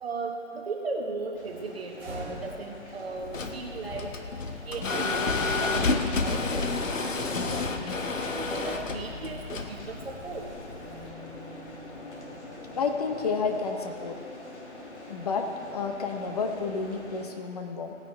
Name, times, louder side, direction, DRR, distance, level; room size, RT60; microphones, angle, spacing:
voice 1, 0.0-4.1 4.7-8.0 8.3-9.4 9.7-10.5, right 3 dB, 50° right, 1 dB, 1.3 m, -37 dB
sound 1, 1.3-17.3, left 2 dB, 65° left, 2.2 m, -46 dB
sound 2, 1.9-13.9, equal, 5° right, 3.2 m, -47 dB
sound 3, 3.2-11.1, left 3 dB, 85° left, 1.2 m, -30 dB
voice 2, 12.7-14.2 15.1-17.9, left 4 dB, 30° left, 4 dB, 0.9 m, -30 dB
17.0 x 9.6 x 3.4 m, 2.4 s
figure-of-eight pair, 150°, 38 cm